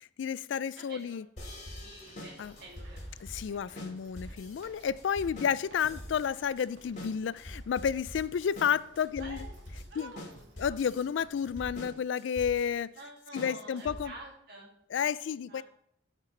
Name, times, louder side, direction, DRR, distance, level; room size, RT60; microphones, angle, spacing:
voice 1, 0.2-1.3 2.4-2.5 3.2-9.5 10.0-10.1 10.6-12.9 13.3-14.1 14.9-15.6, left 7 dB, 70° left, 0.3 m, -31 dB
voice 2, 0.8-1.2 1.8-3.0 3.7-3.8 4.3-4.4 9.2-9.5 9.9-10.8 13.0-14.7 15.5-15.6, right 2 dB, 55° right, 2.5 m, -48 dB
sound 1, 1.4-14.3, left 1 dB, 40° left, 2.3 m, -45 dB
sound 2, 1.6-11.8, right 1 dB, 85° right, 2.2 m, -57 dB
14.0 x 6.0 x 3.3 m
head